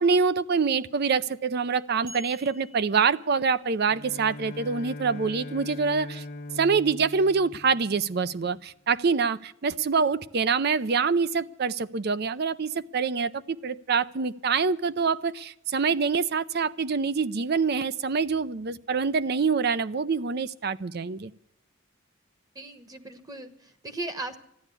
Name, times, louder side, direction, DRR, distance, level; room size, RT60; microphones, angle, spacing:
voice 1, 0.0-6.2 6.6-21.3, right 5 dB, 50° right, 16 dB, 0.5 m, -25 dB
sound 1, 2.1-3.9, left 1 dB, 80° right, 3.5 m, -49 dB
Bowed string instrument, 3.9-8.5, left 2 dB, 45° left, 1.0 m, -41 dB
voice 2, 22.5-24.4, right 2 dB, 15° right, 8 dB, 1.1 m, -37 dB
13.5 x 11.0 x 8.3 m, 0.74 s
head